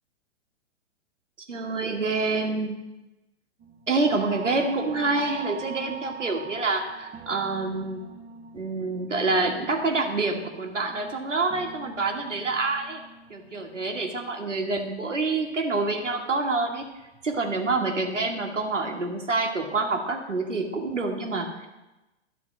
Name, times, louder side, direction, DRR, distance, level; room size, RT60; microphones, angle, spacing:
voice 1, 1.5-2.8 3.9-8.0 8.5-13.0 13.3-16.8 17.2-21.7, right 3 dB, 90° right, 2 dB, 1.6 m, -27 dB
sound 1, 3.6-15.8 16.1-17.7 18.1-18.4 18.7-18.8, right 5 dB, 20° right, 0.9 m, -43 dB
11.0 x 4.2 x 7.0 m, 1.0 s
figure-of-eight pair, 115°, 36 cm